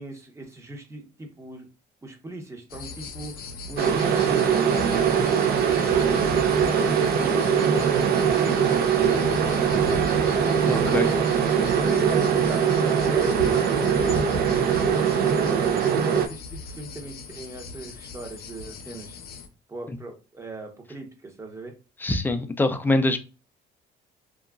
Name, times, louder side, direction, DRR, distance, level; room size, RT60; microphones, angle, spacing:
voice 1, 0.0-1.7 2.0-3.3 3.7-5.2 5.8-11.2 11.7-15.5 15.9-19.2 19.7-21.7, right 2 dB, 15° right, 3 dB, 0.8 m, -38 dB
sound 1, 2.7-19.5, left 4 dB, 65° left, 0.6 m, -38 dB
sound 2, 3.8-16.3, right 7 dB, 65° right, 0.5 m, -22 dB
voice 2, 10.7-11.1 22.0-23.2, left 2 dB, 10° left, 8 dB, 0.4 m, -23 dB
2.8 x 2.3 x 2.3 m, 0.33 s
cardioid pair, 110°, 17 cm